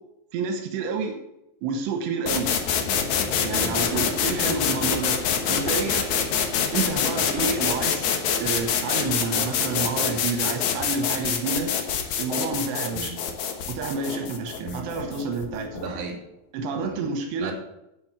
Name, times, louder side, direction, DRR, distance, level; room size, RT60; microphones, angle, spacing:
voice 1, 0.3-1.2 1.6-2.6 3.4-6.1 6.7-8.1 8.4-11.7 12.2-13.2 13.7-15.8 16.5-17.5, right 4 dB, 85° right, 5 dB, 3.4 m, -29 dB
sound 1, 2.3-16.0, left 7 dB, 70° left, 1.8 m, -26 dB
voice 2, 3.5-3.9 12.9-13.2 14.6-15.0 15.7-16.2 16.8-17.0 17.4-17.5, right 4 dB, 55° right, 0 dB, 3.4 m, -36 dB
9.8 x 8.2 x 6.1 m, 0.85 s
omnidirectional pair, 4.9 m